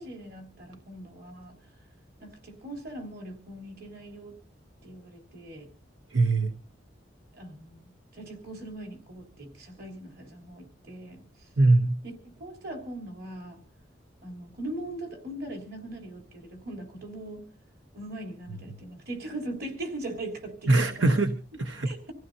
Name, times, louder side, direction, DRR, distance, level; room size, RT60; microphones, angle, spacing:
voice 1, 0.0-1.6 2.2-4.4 4.8-5.7 7.3-11.2 12.0-12.1 12.4-13.6 14.2-17.5 17.9-21.3 21.8-22.1, right 1 dB, 55° right, 4 dB, 3.6 m, -40 dB
voice 2, 6.1-6.6 11.6-12.0 20.7-21.9, right 2 dB, 85° right, 7 dB, 1.0 m, -22 dB
26.0 x 15.5 x 2.7 m, 0.34 s
head